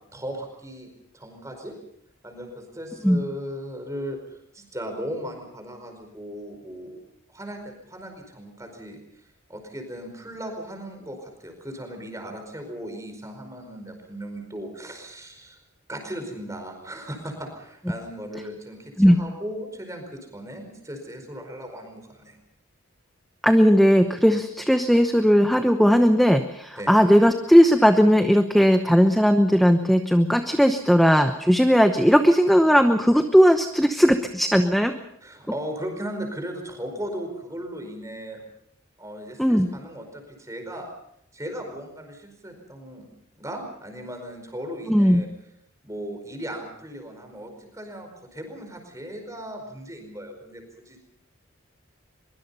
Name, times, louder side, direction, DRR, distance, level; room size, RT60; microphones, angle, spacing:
voice 1, 0.1-1.7 2.2-7.0 7.3-15.6 15.9-22.4 26.8-26.9 35.2-38.4 39.0-40.9 41.3-43.0 43.3-45.3 45.8-51.0, equal, 15° right, 4 dB, 4.9 m, -37 dB
voice 2, 23.4-34.9 39.4-39.7 44.9-45.2, equal, ahead, 6 dB, 0.9 m, -17 dB
23.5 x 23.0 x 5.5 m, 0.72 s
head